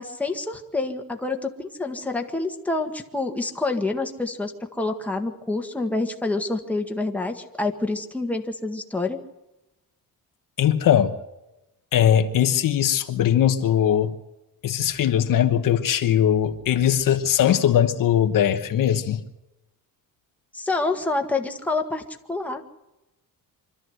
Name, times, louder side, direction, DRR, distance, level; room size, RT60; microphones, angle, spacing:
voice 1, 0.0-9.2 20.5-22.0 22.3-22.6, left 3 dB, 5° left, 1.7 m, -27 dB
voice 2, 10.6-11.1 11.9-14.2 14.6-19.2, left 10 dB, 60° left, 1.2 m, -20 dB
25.5 x 13.0 x 7.9 m
cardioid pair, 130°, 37 cm